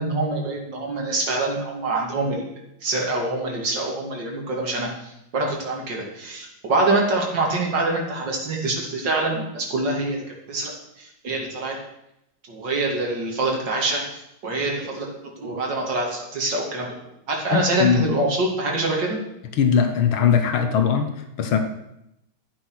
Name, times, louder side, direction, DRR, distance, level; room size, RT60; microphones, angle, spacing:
voice 1, 0.0-2.5 2.8-10.7 11.0-11.8 12.5-15.1 15.4-16.9 17.3-19.2, right 2 dB, 60° right, 0 dB, 3.4 m, -25 dB
voice 2, 17.5-18.1 19.5-21.6, left 7 dB, 85° left, 7 dB, 2.0 m, -20 dB
13.0 x 8.5 x 6.3 m, 0.82 s
omnidirectional pair, 2.2 m